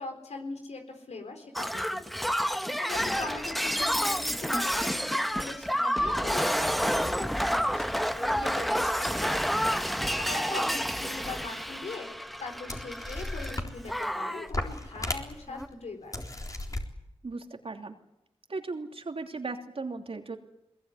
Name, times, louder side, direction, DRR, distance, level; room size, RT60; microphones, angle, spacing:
voice 1, 0.0-16.4, left 3 dB, 90° left, 4 dB, 4.2 m, -41 dB
Shatter, 1.6-13.6 13.9-14.5 15.5-15.7, equal, ahead, 1.1 m, -29 dB
sound 1, 11.6-11.7 12.4-12.5 12.7-14.1 14.5-15.6 16.1-16.8, left 1 dB, 30° left, 3.9 m, -35 dB
voice 2, 17.2-17.9 18.5-20.4, right 3 dB, 60° right, 5 dB, 3.0 m, -37 dB
21.5 x 21.5 x 9.8 m, 0.87 s
cardioid pair, 45°, 11 cm